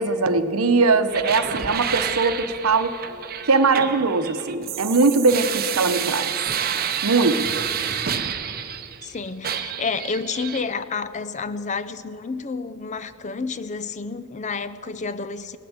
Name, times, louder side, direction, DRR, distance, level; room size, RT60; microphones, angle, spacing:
voice 1, 0.0-2.9 3.5-6.3 7.0-7.6, right 3 dB, 70° right, 10 dB, 0.9 m, -20 dB
sound 1, 1.1-9.1 9.4-10.6, right 8 dB, 45° right, 0.8 m, -29 dB
voice 2, 9.0-15.6, left 4 dB, 35° left, 14 dB, 0.5 m, -30 dB
18.5 x 8.0 x 8.8 m, 2.9 s
head